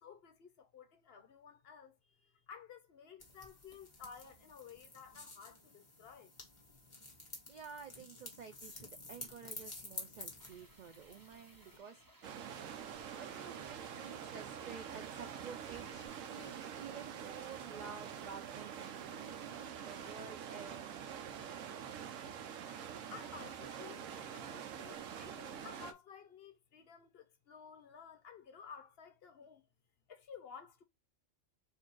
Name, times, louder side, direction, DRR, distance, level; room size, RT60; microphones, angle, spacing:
voice 1, 0.0-6.3 23.1-29.7 30.1-30.8, left 6 dB, 55° left, 0.8 m, -54 dB
sound 1, 3.2-11.8, left 2 dB, 25° left, 1.4 m, -51 dB
voice 2, 7.5-12.0 13.1-21.1, right 6 dB, 70° right, 0.4 m, -51 dB
sound 2, 10.4-16.1, right 1 dB, 20° right, 0.7 m, -63 dB
sound 3, 12.2-25.9, right 8 dB, 90° right, 1.0 m, -46 dB
4.3 x 2.7 x 4.5 m
omnidirectional pair, 1.3 m